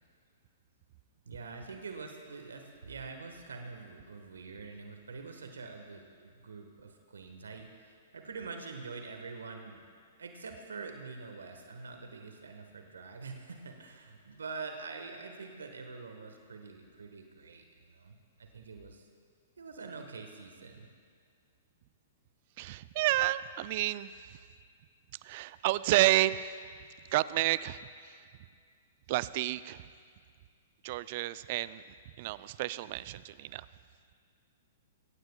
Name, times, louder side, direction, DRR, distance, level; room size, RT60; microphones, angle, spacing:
voice 1, 1.2-9.8 10.2-19.1 19.6-20.9, right 4 dB, 80° right, 4 dB, 1.4 m, -45 dB
voice 2, 22.6-24.1 25.2-26.5 27.1-27.8 29.1-29.8 30.8-31.8 32.2-33.6, right 16 dB, 50° right, 17 dB, 0.4 m, -30 dB
22.5 x 17.0 x 2.3 m, 2.1 s
hypercardioid pair, 115°, 0 cm